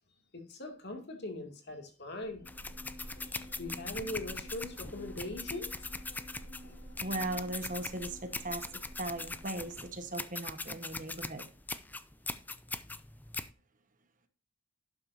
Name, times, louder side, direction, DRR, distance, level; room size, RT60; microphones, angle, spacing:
voice 1, 0.3-2.4 3.2-5.7, left 2 dB, 50° left, 2.6 m, -41 dB
sound 1, 2.2-10.0, equal, 65° left, 5.5 m, -49 dB
sound 2, 2.5-13.5, left 3 dB, 10° left, 0.4 m, -41 dB
voice 2, 7.0-8.6 9.0-11.5, right 2 dB, 40° right, 1.3 m, -38 dB
12.0 x 9.1 x 2.8 m
head